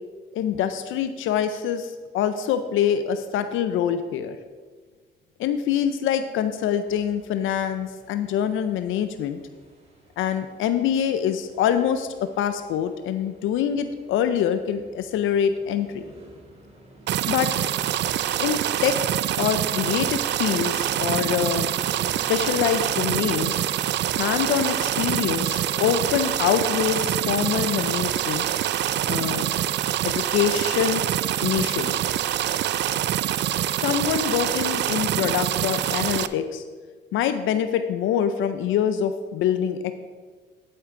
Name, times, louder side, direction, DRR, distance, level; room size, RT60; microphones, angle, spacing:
voice 1, 0.3-4.4 5.4-9.4 10.2-16.0 17.3-17.5 18.4-19.1 19.4-21.7 22.3-23.6 24.2-28.4 29.1-29.5 30.0-31.0 31.4-32.0 33.8-36.6 37.1-39.9, left 9 dB, 85° left, 10 dB, 0.5 m, -25 dB
sound 1, 6.8-23.5, right 1 dB, 30° right, 2.9 m, -49 dB
sound 2, 17.1-36.3, right 12 dB, 60° right, 0.4 m, -25 dB
9.5 x 7.8 x 3.7 m, 1.5 s
cardioid pair, 90°, 20 cm